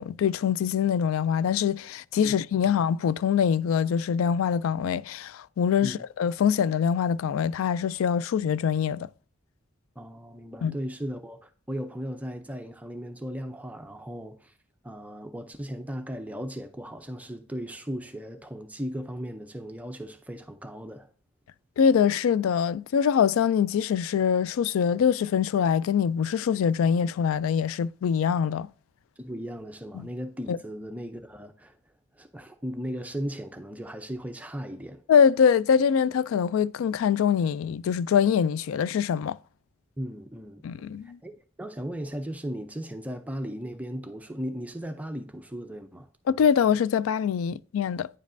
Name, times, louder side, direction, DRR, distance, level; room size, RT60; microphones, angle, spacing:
voice 1, 0.0-9.1 10.6-10.7 21.8-28.7 29.9-30.1 30.5-30.6 35.1-39.4 40.6-41.2 46.3-48.1, left 7 dB, 80° left, 0.3 m, -24 dB
voice 2, 10.0-14.5 14.8-21.1 29.2-31.8 32.2-35.0 40.0-40.7 41.0-41.3 41.6-46.1, equal, 5° right, 0.5 m, -36 dB
9.7 x 5.2 x 2.6 m
head